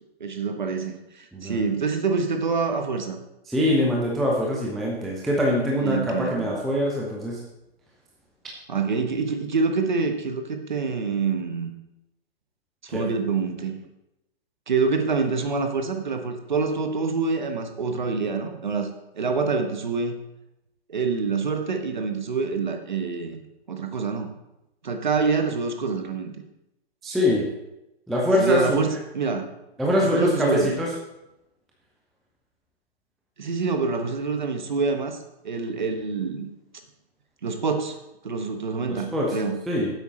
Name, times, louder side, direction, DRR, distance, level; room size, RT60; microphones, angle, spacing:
voice 1, 0.2-3.2 5.8-6.5 8.7-11.7 12.8-13.8 14.7-18.9 19.1-20.2 20.9-23.4 23.7-24.3 24.8-26.3 28.4-29.5 30.0-30.7 33.4-35.2 35.4-36.5 37.4-38.0 38.2-39.6, right 4 dB, 45° right, 6 dB, 1.2 m, -26 dB
voice 2, 1.3-1.6 3.5-7.4 12.9-13.0 27.0-27.5 28.1-28.8 29.8-30.9 38.9-39.4 39.7-39.9, left 1 dB, ahead, -3 dB, 0.4 m, -23 dB
10.0 x 8.0 x 4.3 m, 0.91 s
hypercardioid pair, 180°, 32 cm